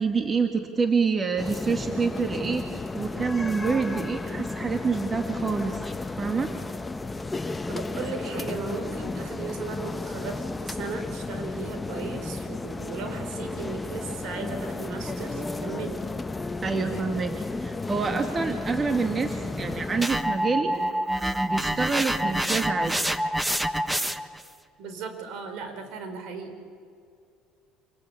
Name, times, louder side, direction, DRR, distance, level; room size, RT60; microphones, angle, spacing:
voice 1, 0.0-2.6 2.9-5.8 6.2-6.5 16.6-20.7 21.4-23.0, right 5 dB, 30° right, 6 dB, 1.9 m, -27 dB
sound 1, 1.4-20.1, left 3 dB, 15° left, 1.0 m, -33 dB
voice 2, 7.7-16.0 24.8-26.6, right 5 dB, 70° right, 7 dB, 4.5 m, -37 dB
sound 2, 20.0-24.4, right 1 dB, 5° right, 1.1 m, -27 dB
27.0 x 19.0 x 8.6 m, 2.3 s
supercardioid pair, 95°, 0 cm